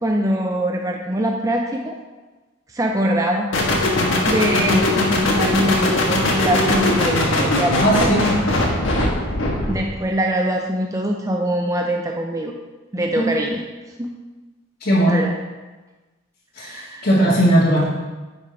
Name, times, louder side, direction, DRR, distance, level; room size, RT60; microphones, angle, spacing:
voice 1, 0.0-2.0 2.7-3.5 4.2-8.6 9.6-12.5 12.9-13.6 14.0-14.1 15.1-15.3 16.6-17.1, right 1 dB, 15° right, 2 dB, 0.5 m, -23 dB
sound 1, 3.5-9.9, left 1 dB, 80° left, 1.5 m, -20 dB
voice 2, 7.8-8.2 13.2-13.3 14.8-15.2 16.5-17.8, right 1 dB, 50° left, -10 dB, 1.7 m, -17 dB
9.7 x 5.8 x 3.4 m, 1.2 s
head